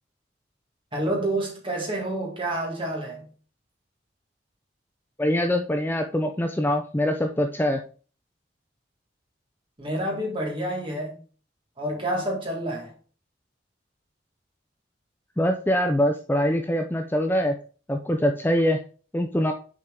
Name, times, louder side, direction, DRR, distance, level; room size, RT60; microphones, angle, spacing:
voice 1, 0.9-3.3 9.8-11.2 11.8-12.9, right 1 dB, 25° right, 1.9 m, -28 dB
voice 2, 5.2-7.8 15.4-17.6 17.9-18.8 19.1-19.5, equal, 10° left, 0.5 m, -23 dB
6.3 x 4.4 x 3.7 m
head